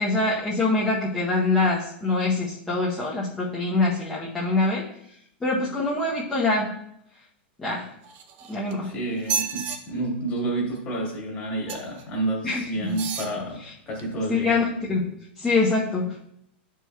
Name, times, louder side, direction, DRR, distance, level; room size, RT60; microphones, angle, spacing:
voice 1, 0.0-4.8 5.4-6.7 7.6-7.9 8.5-8.9 12.4-13.0 14.3-15.1 15.4-16.3, left 3 dB, 10° left, -8 dB, 0.8 m, -24 dB
sound 1, 8.0-8.7 9.2-9.8 11.7-12.0 12.9-13.3 14.0-14.1, right 6 dB, 30° right, 0.6 m, -31 dB
voice 2, 8.8-14.6, right 2 dB, 25° left, -2 dB, 1.9 m, -30 dB
11.5 x 4.6 x 2.3 m, 0.72 s
supercardioid pair, 165°, 6 cm